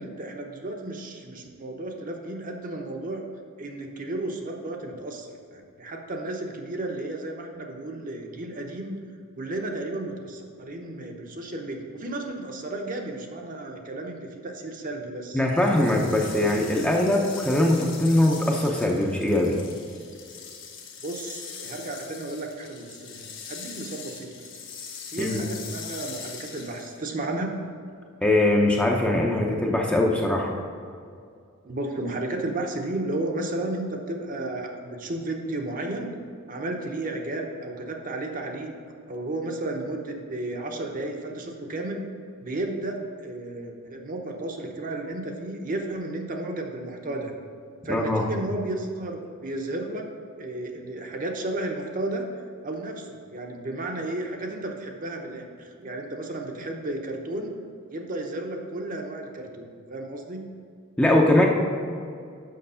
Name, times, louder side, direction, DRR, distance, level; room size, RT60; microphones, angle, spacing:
voice 1, 0.0-3.3 3.6-9.0 9.4-15.4 21.0-24.5 25.1-27.5 31.6-36.1 36.5-38.7 39.1-42.0 42.4-47.3 47.8-50.1 50.4-52.2 52.6-57.5 57.9-60.5, right 2 dB, 40° right, 2 dB, 0.8 m, -33 dB
voice 2, 15.3-19.6 25.2-25.4 28.2-30.5 47.9-48.3 61.0-61.5, left 1 dB, 5° left, -1 dB, 0.6 m, -21 dB
sound 1, 15.4-27.1, left 6 dB, 60° left, 1.1 m, -41 dB
6.6 x 5.9 x 5.5 m, 2.3 s
head